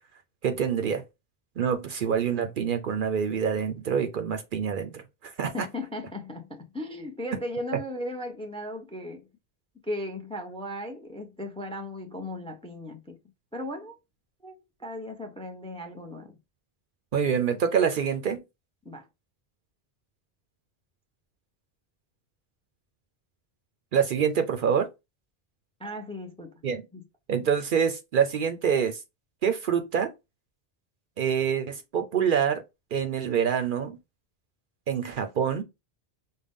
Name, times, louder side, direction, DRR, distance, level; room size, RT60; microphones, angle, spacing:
voice 1, 0.4-1.0 1.6-5.5 17.1-18.4 23.9-24.9 26.6-26.8 27.3-29.0 29.4-30.1 31.2-32.6 32.9-34.0 34.9-35.6, right 7 dB, 60° right, 0.7 m, -26 dB
voice 2, 5.5-9.3 9.8-13.2 13.5-14.0 14.4-16.4 18.8-19.1 25.8-26.6 26.9-27.0, left 1 dB, 5° left, 0.5 m, -37 dB
5.3 x 2.1 x 3.5 m
omnidirectional pair, 1.0 m